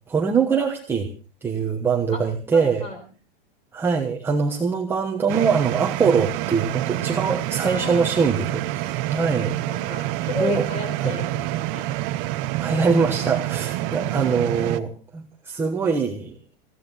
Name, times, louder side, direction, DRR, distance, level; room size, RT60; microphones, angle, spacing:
voice 1, 0.1-1.1 1.4-2.9 3.7-9.5 10.4-10.6 11.0-11.2 12.6-16.6, right 5 dB, 10° right, 1 dB, 1.2 m, -23 dB
voice 2, 2.5-3.0 7.6-8.1 9.7-11.9 13.0-13.1 13.9-14.5, left 2 dB, 20° left, 7 dB, 4.8 m, -33 dB
sound 1, 5.3-14.8, right 16 dB, 30° right, 0.8 m, -27 dB
20.5 x 15.5 x 4.1 m, 0.36 s
supercardioid pair, 180°, 29 cm